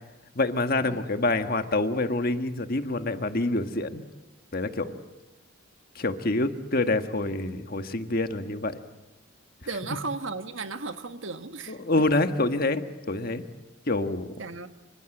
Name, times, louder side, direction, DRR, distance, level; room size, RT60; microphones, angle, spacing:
voice 1, 0.3-4.0 4.5-4.9 5.9-8.8 11.7-13.4 13.9-14.3, left 2 dB, 45° left, 8 dB, 1.6 m, -26 dB
voice 2, 9.6-11.8 14.4-14.7, right 3 dB, 65° right, 9 dB, 1.5 m, -35 dB
27.0 x 26.0 x 7.9 m, 1.0 s
head